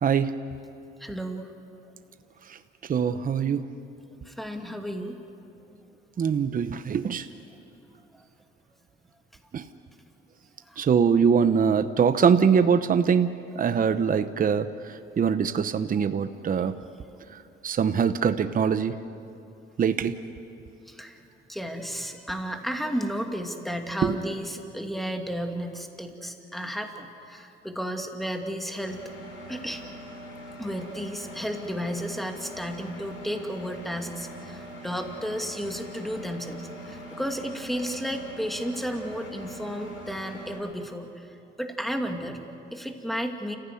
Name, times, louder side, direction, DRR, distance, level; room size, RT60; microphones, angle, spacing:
voice 1, 0.0-0.3 2.5-3.6 6.2-7.3 9.5-9.6 10.8-16.7 17.3-19.0 19.8-20.1 24.0-24.2, right 6 dB, 45° right, 10 dB, 0.9 m, -23 dB
voice 2, 1.0-1.5 4.2-5.2 8.1-8.2 10.6-10.9 20.9-21.2 21.5-29.0 29.5-29.8 30.6-43.6, equal, ahead, 3 dB, 2.5 m, -33 dB
Engine, 28.9-40.6, equal, 70° left, 8.0 m, -42 dB
29.0 x 15.5 x 9.8 m, 2.7 s
cardioid pair, 90°, 20 cm